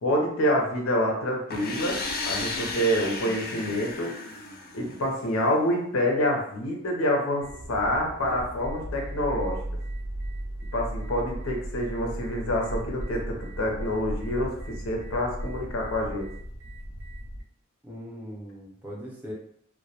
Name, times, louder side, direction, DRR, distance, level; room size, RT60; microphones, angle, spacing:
voice 1, 0.0-2.0 2.3-4.1 4.7-9.6 10.7-16.3, equal, 90° left, 0 dB, 0.6 m, -27 dB
sound 1, 1.5-5.3, left 3 dB, 45° left, 0.4 m, -34 dB
sound 2, 7.4-17.4, right 1 dB, 65° right, 0.4 m, -36 dB
voice 2, 17.8-19.3, equal, 10° right, -4 dB, 0.5 m, -40 dB
2.2 x 2.1 x 2.7 m, 0.66 s
head